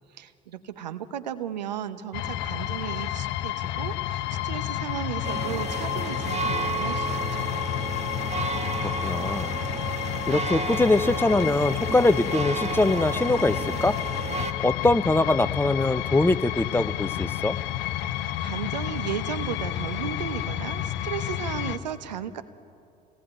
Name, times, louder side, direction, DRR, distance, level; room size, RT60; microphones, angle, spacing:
voice 1, 0.2-7.7 18.0-22.4, right 9 dB, 90° right, 12 dB, 1.0 m, -35 dB
sound 1, 2.1-21.8, left 12 dB, 65° left, 1.0 m, -30 dB
sound 2, 5.2-14.5, right 5 dB, 30° right, 1.9 m, -33 dB
voice 2, 8.8-9.5 10.3-14.0 14.6-17.6, left 2 dB, 10° left, 14 dB, 0.7 m, -23 dB
26.5 x 19.0 x 9.1 m, 2.6 s
hypercardioid pair, 65°, 21 cm